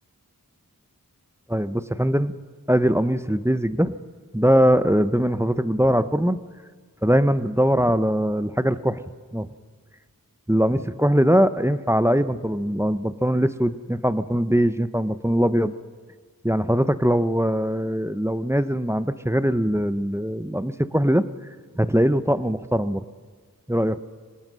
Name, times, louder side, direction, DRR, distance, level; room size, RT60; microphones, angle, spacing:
voice 1, 1.5-2.3 2.7-4.0 4.3-6.4 7.0-9.0 9.3-9.5 10.5-15.7 16.4-21.2 21.8-23.0 23.7-24.0, equal, 5° right, 13 dB, 0.8 m, -21 dB
24.5 x 18.5 x 6.3 m, 1.5 s
wide cardioid pair, 45°, 35 cm